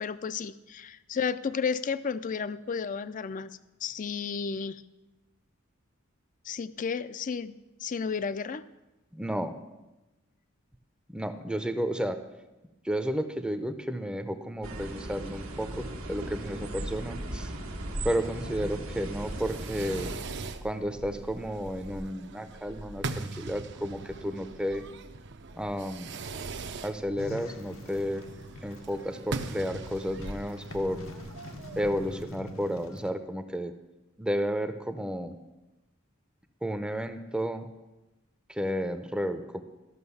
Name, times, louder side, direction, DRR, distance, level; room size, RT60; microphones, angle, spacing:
voice 1, 0.0-3.5 3.8-4.8 6.4-8.6, left 6 dB, 40° left, 15 dB, 0.4 m, -32 dB
voice 2, 9.1-9.6 11.1-12.2 12.8-17.5 18.0-20.1 20.6-24.9 25.5-26.1 26.8-28.3 28.6-31.0 31.8-33.7 34.2-35.4 36.6-37.7 38.5-39.6, equal, 5° right, 9 dB, 0.6 m, -32 dB
sound 1, 14.6-20.2, right 1 dB, 90° right, 1.4 m, -37 dB
Fireworks, 19.2-32.2, right 3 dB, 60° right, 0.7 m, -41 dB
sound 2, 27.2-33.1, left 1 dB, 80° left, 1.0 m, -45 dB
13.0 x 6.1 x 7.0 m, 1.0 s
head